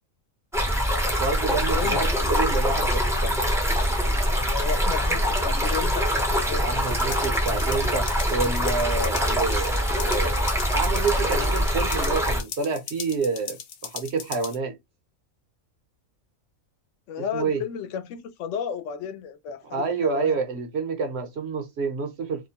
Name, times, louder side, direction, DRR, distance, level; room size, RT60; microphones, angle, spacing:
Stream, 0.5-12.4, equal, 5° right, 0.4 m, -24 dB
voice 1, 1.2-3.4 6.6-14.8 17.3-17.6 19.7-22.5, right 4 dB, 60° right, 0.8 m, -28 dB
voice 2, 4.3-6.8 17.1-20.4, left 7 dB, 70° left, 0.8 m, -33 dB
sound 1, 6.9-14.6, left 8 dB, 85° left, 1.1 m, -39 dB
2.7 x 2.1 x 2.8 m
omnidirectional pair, 1.4 m